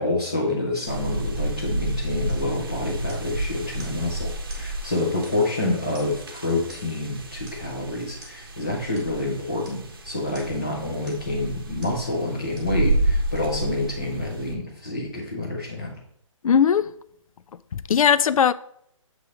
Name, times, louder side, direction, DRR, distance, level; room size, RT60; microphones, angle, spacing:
voice 1, 0.0-16.0, left 2 dB, 10° left, 0.4 m, -28 dB
sound 1, 0.9-14.5, right 1 dB, 40° right, 0.8 m, -30 dB
sound 2, 2.3-2.5 3.1-3.4 3.8-4.0 4.5-4.7 5.2-5.6 5.9-6.3 6.7-7.0 7.5-7.7 8.2-8.4 8.9-9.1 9.6-9.8 10.3-10.6 11.0-11.3 11.8-12.0 12.5-12.8 13.3-13.4, right 1 dB, 15° right, 1.0 m, -48 dB
voice 2, 16.4-16.9 17.7-18.5, left 7 dB, 85° left, 0.4 m, -19 dB
7.0 x 3.1 x 5.0 m
hypercardioid pair, 180°, 17 cm